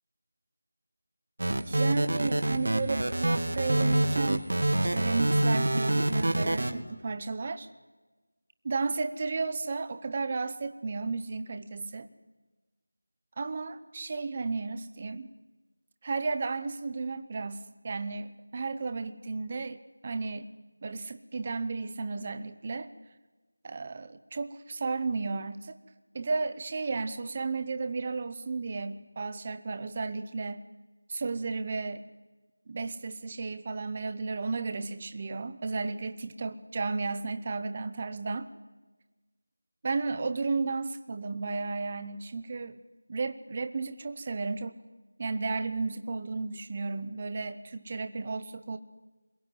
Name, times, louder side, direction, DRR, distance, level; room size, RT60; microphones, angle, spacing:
sound 1, 1.4-6.7, right 1 dB, 50° right, 2.5 m, -26 dB
voice 1, 1.7-4.5 4.8-7.7 8.6-12.1 13.4-15.3 16.0-20.5 20.8-22.9 23.6-25.7 26.1-30.6 31.1-32.0 32.7-38.5 39.8-42.8 43.1-44.8 45.2-48.8, right 4 dB, 15° right, 10 dB, 0.8 m, -33 dB
24.5 x 21.5 x 9.5 m, 1.2 s
figure-of-eight pair, 180°, 0 cm